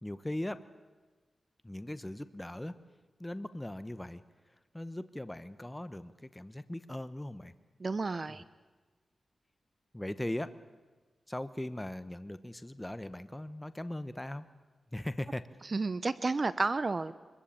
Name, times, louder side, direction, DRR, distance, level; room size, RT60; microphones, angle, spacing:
voice 1, 0.0-0.6 1.6-2.8 3.2-4.2 4.7-7.5 8.3-8.4 9.9-10.6 11.3-14.5 14.9-15.5, left 1 dB, 15° left, 13 dB, 1.0 m, -39 dB
voice 2, 7.8-8.4 15.7-17.1, right 3 dB, 45° right, 15 dB, 0.8 m, -31 dB
24.5 x 22.0 x 8.7 m, 1.3 s
cardioid pair, 70°, 0 cm